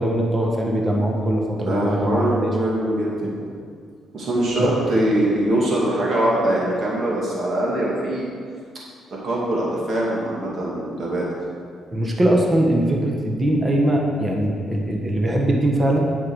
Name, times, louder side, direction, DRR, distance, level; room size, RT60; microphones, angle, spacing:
voice 1, 0.0-2.5 4.6-4.8 11.9-16.0, right 1 dB, 25° right, 0 dB, 1.4 m, -21 dB
voice 2, 1.6-3.5 4.1-8.3 9.1-11.3, right 1 dB, 55° right, -5 dB, 2.5 m, -22 dB
8.5 x 5.9 x 6.4 m, 2.1 s
cardioid pair, 90°, 0 cm